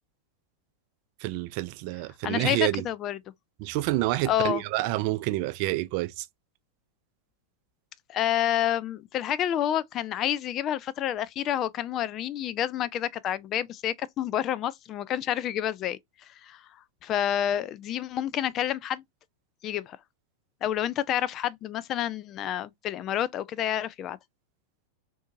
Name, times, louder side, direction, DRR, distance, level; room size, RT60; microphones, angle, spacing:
voice 1, 1.2-2.9 3.6-6.3, right 17 dB, 45° right, 0.4 m, -28 dB
voice 2, 2.2-3.2 4.2-4.6 8.1-16.0 16.4-16.6 17.0-19.0 19.6-20.0 20.6-24.2, left 11 dB, 35° left, 0.3 m, -29 dB
3.6 x 2.6 x 2.4 m
figure-of-eight pair, 90°, 0 cm